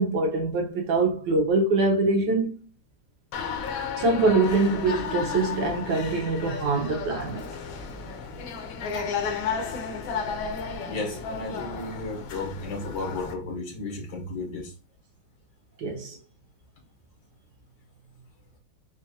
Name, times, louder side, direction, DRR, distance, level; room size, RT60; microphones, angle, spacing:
voice 1, 0.0-2.5 4.0-7.4 15.8-16.2, right 3 dB, 65° right, 1.5 m, -24 dB
sound 1, 3.3-13.3, left 5 dB, 85° left, 1.5 m, -33 dB
voice 2, 10.9-14.7, left 2 dB, 70° left, 2.1 m, -34 dB
4.4 x 2.5 x 2.7 m
omnidirectional pair, 2.2 m